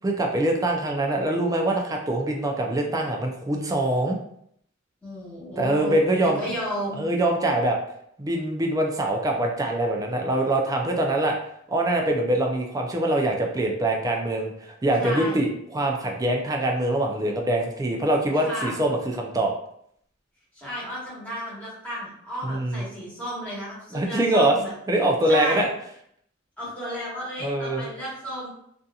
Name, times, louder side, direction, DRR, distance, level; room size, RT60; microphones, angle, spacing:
voice 1, 0.0-4.2 5.6-6.4 7.0-7.8 8.2-11.4 11.7-19.5 22.4-22.8 23.9-24.6 24.9-25.7 27.4-27.9, right 1 dB, 20° right, 1 dB, 0.4 m, -24 dB
voice 2, 5.0-7.0 15.0-15.4 18.4-18.9 20.5-24.7 25.3-25.7 26.6-28.5, equal, 10° left, -9 dB, 1.2 m, -33 dB
2.7 x 2.5 x 2.3 m, 0.70 s
head